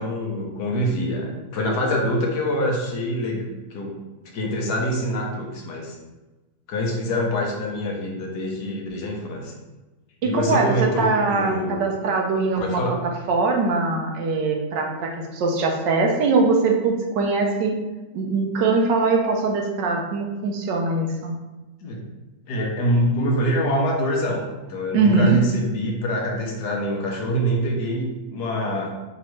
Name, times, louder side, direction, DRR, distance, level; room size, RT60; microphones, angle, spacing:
voice 1, 0.0-4.0 4.3-6.0 6.7-9.5 10.2-11.9 12.6-13.0 21.8-22.0 22.5-28.9, equal, 70° left, 0 dB, 1.3 m, -25 dB
voice 2, 10.2-13.0 13.3-17.7 18.1-21.3 24.9-25.4, right 3 dB, 85° right, 2 dB, 1.3 m, -22 dB
5.2 x 2.9 x 3.1 m, 1.1 s
omnidirectional pair, 1.9 m